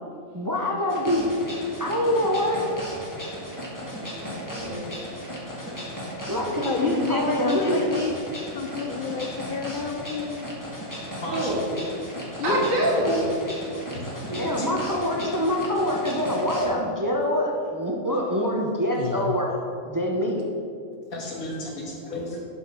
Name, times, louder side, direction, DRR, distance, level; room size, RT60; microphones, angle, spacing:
voice 1, 0.3-1.3 1.8-2.6 6.3-7.9 14.4-19.5 19.8-20.4, equal, 20° right, 0 dB, 0.5 m, -25 dB
sound 1, 0.9-16.6, equal, 15° left, 1.4 m, -36 dB
voice 2, 3.8-4.9 11.3-11.7 12.4-13.4, right 1 dB, 70° right, -2 dB, 2.0 m, -26 dB
voice 3, 6.6-8.1 8.5-10.5 11.4-11.6 12.4-12.5 19.0-19.3, left 5 dB, 65° left, 4 dB, 0.5 m, -29 dB
voice 4, 11.2-11.7 12.5-12.7 13.9-14.7 21.1-22.4, left 1 dB, 90° left, -2 dB, 2.0 m, -32 dB
7.6 x 5.6 x 5.9 m, 2.4 s
omnidirectional pair, 1.5 m